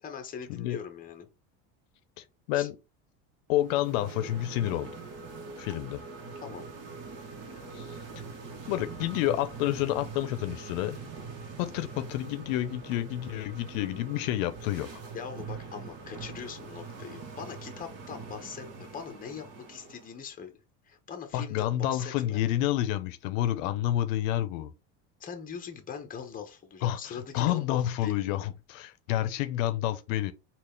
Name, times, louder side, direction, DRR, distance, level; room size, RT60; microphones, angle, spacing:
voice 1, 0.0-1.3 2.5-2.7 6.4-6.7 15.1-20.6 20.8-22.4 25.2-28.3, left 7 dB, 20° left, 0.9 m, -42 dB
voice 2, 2.2-2.8 3.5-4.9 5.6-6.0 7.7-8.0 8.7-11.0 11.6-14.9 21.3-24.7 26.8-30.3, left 13 dB, 90° left, 0.6 m, -29 dB
sound 1, 3.5-20.2, right 4 dB, 40° right, 1.1 m, -43 dB
3.8 x 2.4 x 3.2 m
supercardioid pair, 130°, 38 cm